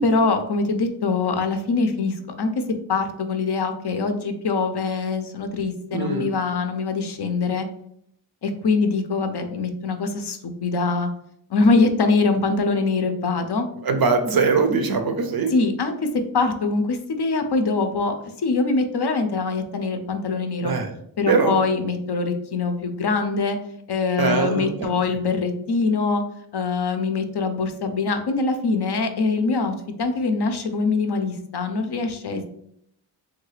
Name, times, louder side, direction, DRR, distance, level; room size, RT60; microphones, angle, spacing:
voice 1, 0.0-2.5 2.9-7.7 8.4-11.1 11.5-13.7 15.5-16.1 16.3-18.1 18.4-20.7 21.2-23.6 23.9-26.2 26.5-32.5, left 4 dB, 55° left, 6 dB, 0.5 m, -23 dB
voice 2, 5.9-6.3 13.8-15.5 20.6-20.9 21.3-21.6 24.2-24.9, right 4 dB, 50° right, 6 dB, 0.5 m, -21 dB
3.3 x 2.3 x 3.2 m, 0.71 s
wide cardioid pair, 90°, 49 cm